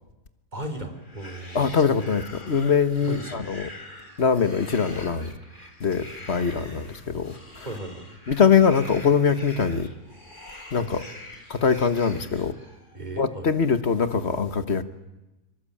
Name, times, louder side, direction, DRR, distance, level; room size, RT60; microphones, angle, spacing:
voice 1, 0.5-1.8 3.1-3.5 7.7-8.2 12.9-13.5, right 1 dB, 30° right, 3.6 m, -36 dB
sound 1, 1.0-13.0, left 2 dB, 35° left, 3.9 m, -45 dB
voice 2, 1.5-3.7 4.2-5.3 5.8-7.4 8.3-9.9 10.7-11.0 11.5-12.5 13.2-14.8, left 6 dB, 50° left, 1.6 m, -22 dB
24.5 x 24.0 x 8.7 m
omnidirectional pair, 1.5 m